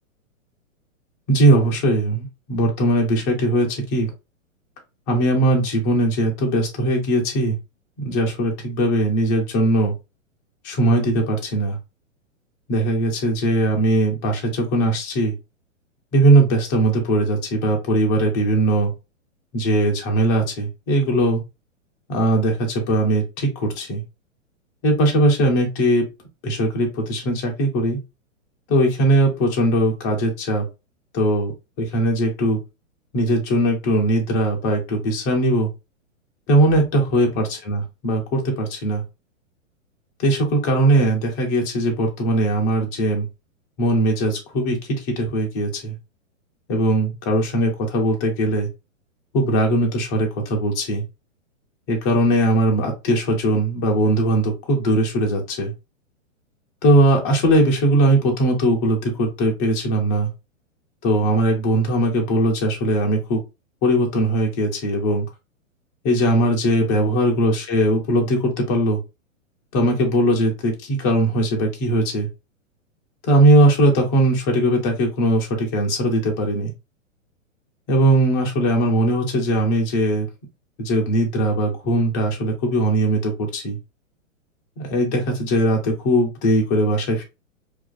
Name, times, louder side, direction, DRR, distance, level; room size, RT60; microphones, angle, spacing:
voice 1, 1.3-4.1 5.1-7.6 8.0-9.9 10.6-11.8 12.7-15.3 16.1-18.9 19.5-21.4 22.1-24.0 24.8-26.1 26.4-28.0 28.7-30.7 31.1-31.5 31.8-32.6 33.1-35.7 36.5-39.0 40.2-43.3 43.8-44.8 45.2-46.0 46.7-48.7 49.3-51.0 51.9-55.7 56.8-60.3 61.0-63.4 63.8-65.3 66.0-69.0 69.7-72.3 73.2-76.7 77.9-80.3 80.8-83.8 84.8-87.2, right 1 dB, 15° left, 1 dB, 0.3 m, -20 dB
2.3 x 2.3 x 2.3 m, 0.27 s
hypercardioid pair, 125°, 39 cm